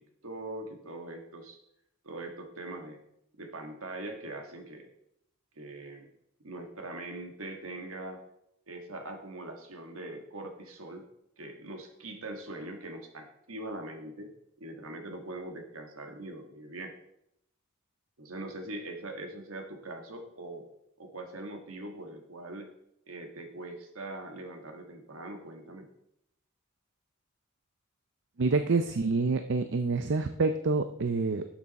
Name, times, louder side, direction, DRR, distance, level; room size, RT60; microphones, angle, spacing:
voice 1, 0.0-1.6 2.0-3.0 3.4-4.9 5.5-6.1 6.4-8.2 8.7-11.0 11.4-17.0 18.2-20.7 21.0-22.7 23.1-25.9, right 2 dB, 75° right, 5 dB, 1.6 m, -42 dB
voice 2, 28.4-31.4, right 3 dB, 60° right, 8 dB, 0.5 m, -27 dB
11.5 x 7.2 x 4.1 m, 0.78 s
head